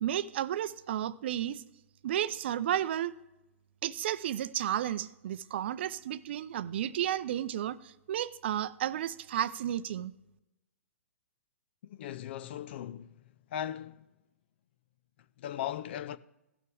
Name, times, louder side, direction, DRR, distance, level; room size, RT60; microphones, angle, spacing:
voice 1, 0.0-1.6 2.0-3.1 3.8-10.1, right 11 dB, 50° right, 0.5 m, -32 dB
voice 2, 11.8-13.2 13.5-14.0 15.4-16.2, left 11 dB, 50° left, 0.5 m, -38 dB
16.5 x 6.7 x 3.4 m
figure-of-eight pair, 115°, 7 cm